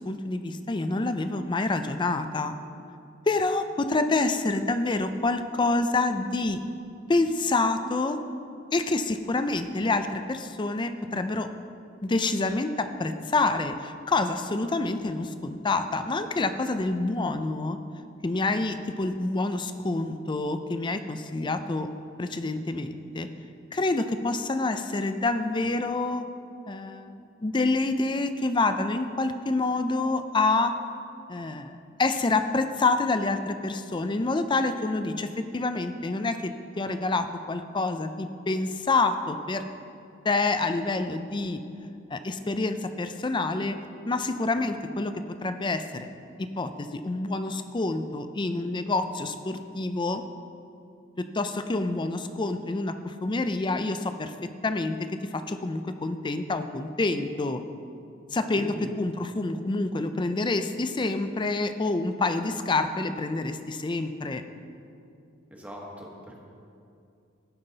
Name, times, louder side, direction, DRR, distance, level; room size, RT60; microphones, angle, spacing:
voice 1, 0.0-2.6 3.3-6.6 7.1-8.2 8.7-11.5 12.0-17.8 18.2-21.9 22.2-23.3 23.7-26.3 26.7-30.7 31.3-39.7 40.2-41.6 42.1-43.8 44.1-45.1 45.4-46.1 46.4-50.2 51.2-55.0 55.2-57.6 58.3-64.4, left 3 dB, 25° left, 9 dB, 0.5 m, -27 dB
voice 2, 58.5-58.9 65.5-66.4, equal, 10° right, -2 dB, 1.4 m, -40 dB
17.0 x 5.8 x 4.0 m, 2.5 s
head